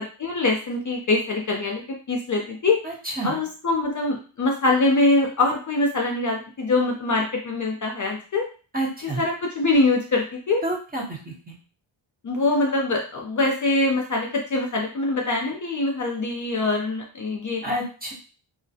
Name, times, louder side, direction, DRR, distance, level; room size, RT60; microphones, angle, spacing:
voice 1, 0.2-2.8 3.2-8.5 9.2-10.6 12.2-17.6, left 2 dB, 40° left, 1 dB, 0.4 m, -23 dB
voice 2, 2.8-3.4 8.7-9.2 10.6-11.2 11.5-11.6 17.6-18.1, right 1 dB, 20° right, -2 dB, 0.7 m, -29 dB
2.4 x 2.0 x 2.6 m, 0.37 s
wide cardioid pair, 100°, 49 cm